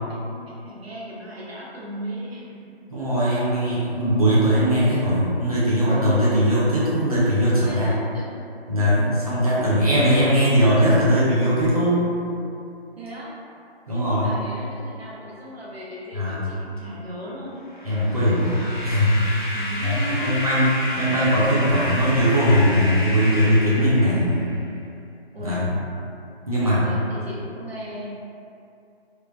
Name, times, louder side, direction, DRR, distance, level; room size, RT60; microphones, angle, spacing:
voice 1, 0.1-2.8 3.4-3.5 7.6-8.4 13.0-13.3 13.9-17.7 19.5-20.4 25.3-25.7 26.5-28.1, equal, 70° right, -5 dB, 0.8 m, -36 dB
voice 2, 2.9-7.9 8.7-12.0 13.9-14.3 16.1-16.4 17.8-18.6 18.8-19.2 19.8-24.5 25.4-25.6 26.5-26.8, equal, 35° right, -10 dB, 0.6 m, -20 dB
sound 1, 17.7-24.7, left 1 dB, 50° left, 0.4 m, -31 dB
3.1 x 2.0 x 2.2 m, 2.6 s
figure-of-eight pair, 175°, 32 cm